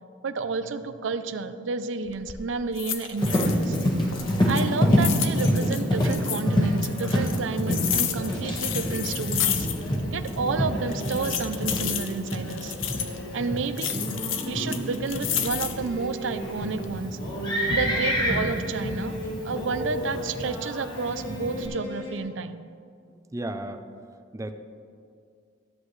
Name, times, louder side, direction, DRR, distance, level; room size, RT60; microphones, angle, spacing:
voice 1, 0.2-3.8 4.5-9.7 10.1-12.8 13.3-14.0 14.3-17.2 17.7-19.2 19.4-22.6, right 4 dB, 75° right, 11 dB, 0.5 m, -31 dB
sound 1, 2.1-2.4 2.7-3.8 4.1-6.4 6.8-10.0 10.3-10.4 10.9-13.2 13.8-15.9 16.4-16.9, left 10 dB, 90° left, 0.7 m, -31 dB
Livestock farm animals working animals, 3.2-21.7, equal, 25° left, 1.4 m, -28 dB
sound 2, 4.1-22.2, equal, 65° left, 1.9 m, -38 dB
voice 2, 23.3-23.8 24.3-24.5, right 1 dB, 15° right, 8 dB, 0.5 m, -33 dB
13.5 x 8.1 x 3.2 m, 2.3 s
head